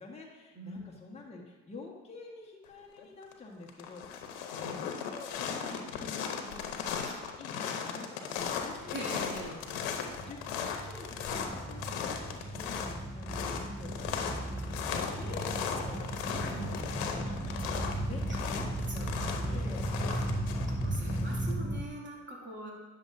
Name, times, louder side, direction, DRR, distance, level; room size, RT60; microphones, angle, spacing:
voice 1, 0.0-4.3 4.8-9.3 10.2-14.1 14.7-16.7 17.1-17.7 18.0-18.2 18.5-19.1 19.4-20.1, left 3 dB, 15° left, -2 dB, 1.4 m, -48 dB
voice 2, 0.5-0.9 4.5-4.9 7.1-7.2 8.9-9.6 16.5-16.7 18.3-18.4 18.9-19.1 20.1-20.2 20.7-22.7, right 2 dB, 25° right, -3 dB, 2.5 m, -42 dB
sound 1, 3.0-3.3 3.6-21.5, left 7 dB, 80° left, 1.0 m, -37 dB
sound 2, 8.5-21.8, right 1 dB, 5° right, 0.5 m, -36 dB
9.8 x 6.7 x 2.7 m, 1.4 s
supercardioid pair, 90°, 43 cm